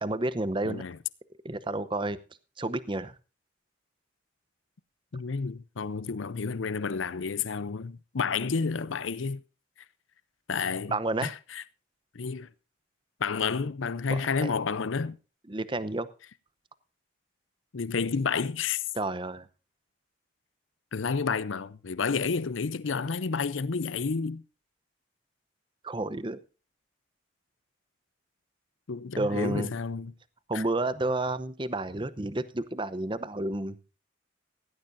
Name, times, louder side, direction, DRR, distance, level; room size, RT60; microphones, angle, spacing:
voice 1, 0.0-0.8 1.4-2.2 2.6-3.1 10.9-11.3 14.1-14.5 15.5-16.1 18.9-19.5 25.8-26.4 29.2-29.7 30.5-33.8, right 2 dB, 25° right, 0.8 m, -30 dB
voice 2, 0.6-1.0 5.1-9.4 10.5-10.9 11.2-11.6 12.1-12.5 13.2-15.2 17.7-18.8 20.9-24.4 28.9-30.1 30.5-30.6, left 5 dB, 85° left, 0.6 m, -30 dB
16.5 x 16.5 x 2.7 m
head